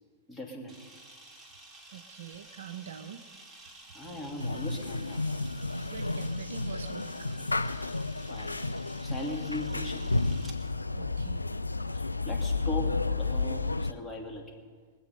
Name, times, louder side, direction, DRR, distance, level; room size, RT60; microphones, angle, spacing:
voice 1, 0.3-1.0 3.9-5.4 8.3-8.6 9.0-10.1 11.9-14.6, left 2 dB, 10° left, -1 dB, 2.7 m, -39 dB
Camera, 0.7-10.6, right 2 dB, 5° right, 2.6 m, -52 dB
voice 2, 1.9-3.3 5.8-7.5 10.9-11.5, right 8 dB, 65° right, 9 dB, 0.7 m, -45 dB
sound 1, 4.4-13.9, left 3 dB, 85° left, 0.4 m, -32 dB
22.5 x 8.4 x 5.4 m, 1.5 s
figure-of-eight pair, 90°, 0 cm